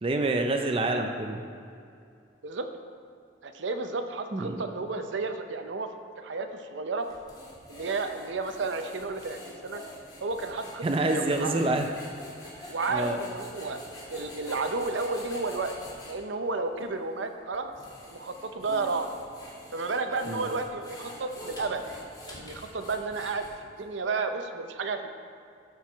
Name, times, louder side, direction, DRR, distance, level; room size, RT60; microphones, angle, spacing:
voice 1, 0.0-1.4 4.3-4.6 10.8-11.8 12.6-13.2 20.3-20.5, right 2 dB, 30° right, 4 dB, 0.4 m, -27 dB
voice 2, 3.4-5.9 6.2-7.1 7.7-9.8 10.2-11.6 12.7-13.8 14.1-15.7 16.0-17.7 18.0-19.2 19.7-21.8 22.3-23.5 23.8-25.1, right 3 dB, 80° right, 7 dB, 0.6 m, -32 dB
sound 1, 7.0-16.2 16.8-16.9 17.5-23.8, left 1 dB, 20° left, 1.5 m, -45 dB
13.0 x 4.7 x 4.5 m, 2.4 s
head